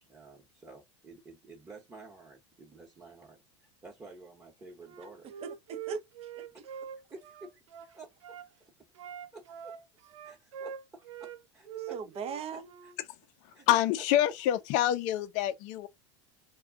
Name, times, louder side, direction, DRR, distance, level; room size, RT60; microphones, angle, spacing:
voice 1, 0.0-5.3 6.5-6.6 7.1-8.9 9.3-9.8 10.2-12.9 13.5-13.9, right 3 dB, 20° right, 1.0 m, -52 dB
Wind instrument woodwind instrument, 4.8-8.5 8.9-11.4 11.7-13.0, right 9 dB, 90° right, 0.5 m, -43 dB
voice 2, 5.4-6.4 11.7-12.7, right 6 dB, 40° right, 0.7 m, -40 dB
voice 3, 13.7-15.9, left 12 dB, 55° left, 0.5 m, -26 dB
2.4 x 2.2 x 3.5 m
hypercardioid pair, 100°, 15 cm